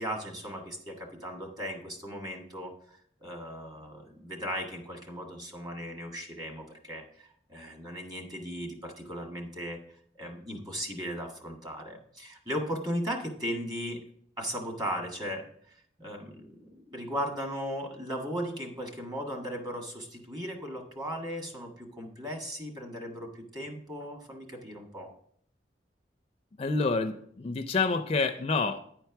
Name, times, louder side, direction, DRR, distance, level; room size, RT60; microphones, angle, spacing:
voice 1, 0.0-9.8 10.2-14.0 14.4-25.1, equal, 25° right, 1 dB, 1.6 m, -37 dB
voice 2, 26.6-28.8, left 3 dB, 35° left, 7 dB, 0.4 m, -28 dB
9.9 x 4.5 x 5.8 m, 0.64 s
head